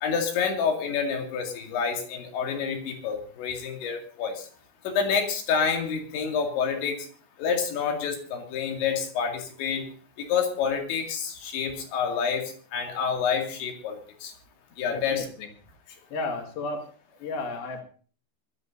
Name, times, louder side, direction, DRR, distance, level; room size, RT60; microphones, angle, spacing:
voice 1, 0.0-4.5 4.8-7.1 7.4-9.9 10.2-14.3 14.8-15.3, left 6 dB, 85° left, 2 dB, 4.7 m, -28 dB
voice 2, 14.9-15.5 16.1-16.9 17.2-17.8, left 3 dB, 60° left, 3 dB, 3.8 m, -33 dB
23.5 x 13.5 x 2.7 m, 0.40 s
omnidirectional pair, 5.1 m